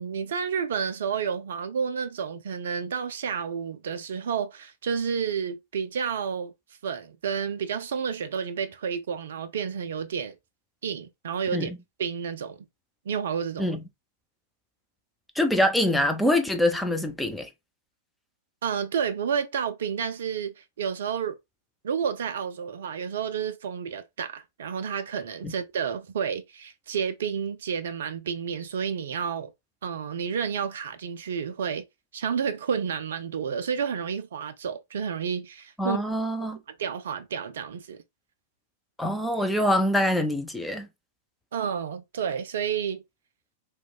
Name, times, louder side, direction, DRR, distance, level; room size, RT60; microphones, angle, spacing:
voice 1, 0.0-6.5 6.8-10.4 10.8-11.7 12.0-12.6 13.1-13.7 18.6-21.4 21.8-29.5 29.8-31.8 32.1-36.0 36.8-38.0 41.5-43.0, right 7 dB, 60° right, 0.3 m, -30 dB
voice 2, 15.4-17.5 25.4-25.5 35.8-36.6 39.0-40.9, left 1 dB, 5° left, 0.4 m, -24 dB
2.9 x 2.1 x 2.3 m
figure-of-eight pair, 95°, 0 cm